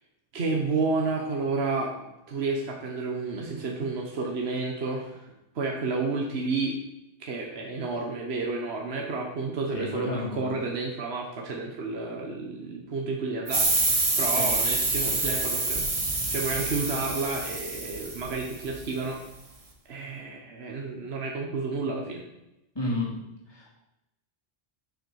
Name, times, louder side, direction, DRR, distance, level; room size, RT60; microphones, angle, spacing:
voice 1, 0.3-6.8 7.2-13.7 14.2-15.8 16.3-19.2 19.9-22.2, right 3 dB, 70° right, 1 dB, 1.4 m, -31 dB
voice 2, 9.7-10.5 14.4-14.5 22.7-23.1 23.5-23.7, left 1 dB, 20° left, -5 dB, 3.3 m, -31 dB
sound 1, 13.5-18.8, right 2 dB, 35° right, 1.3 m, -27 dB
7.6 x 6.8 x 6.3 m, 0.90 s
omnidirectional pair, 1.1 m